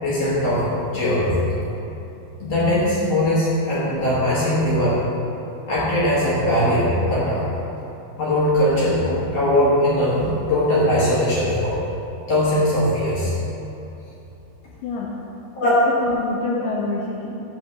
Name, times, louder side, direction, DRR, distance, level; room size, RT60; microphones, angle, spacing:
voice 1, 0.0-1.4 2.4-5.0 5.7-7.4 8.2-11.8 12.3-13.3 15.6-15.7 16.5-16.6, left 1 dB, 55° left, -9 dB, 2.1 m, -20 dB
voice 2, 14.8-15.2 15.6-17.4, left 3 dB, 80° left, -3 dB, 2.0 m, -27 dB
5.9 x 5.3 x 6.5 m, 2.9 s
omnidirectional pair, 4.5 m